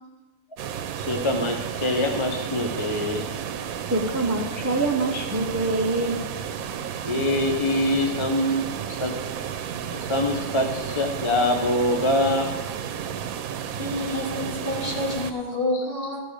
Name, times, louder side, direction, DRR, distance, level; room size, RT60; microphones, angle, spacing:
sound 1, 0.6-15.3, right 8 dB, 80° right, 1.1 m, -32 dB
voice 1, 1.1-3.2 7.0-9.3 9.9-12.5, left 1 dB, 30° left, 2 dB, 0.7 m, -24 dB
voice 2, 3.9-6.2, right 2 dB, 20° right, 2 dB, 0.5 m, -25 dB
voice 3, 13.7-16.2, left 1 dB, 45° left, -2 dB, 2.2 m, -29 dB
14.0 x 6.6 x 5.0 m, 1.1 s
omnidirectional pair, 1.5 m